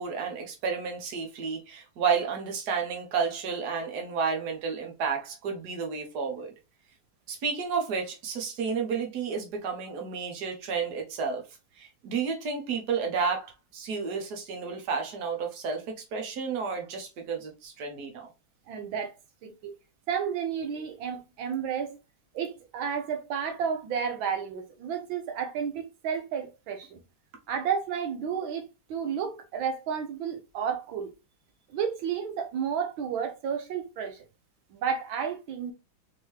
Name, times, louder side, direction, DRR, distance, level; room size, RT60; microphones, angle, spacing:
voice 1, 0.0-6.5 7.3-11.4 11.8-18.3, right 5 dB, 60° right, 1.5 m, -31 dB
voice 2, 18.7-19.1 19.4-19.7 20.1-22.0 22.3-27.0 27.5-31.1 31.7-34.2 34.7-35.7, right 7 dB, 80° right, 1.5 m, -32 dB
4.5 x 3.0 x 3.2 m
omnidirectional pair, 2.1 m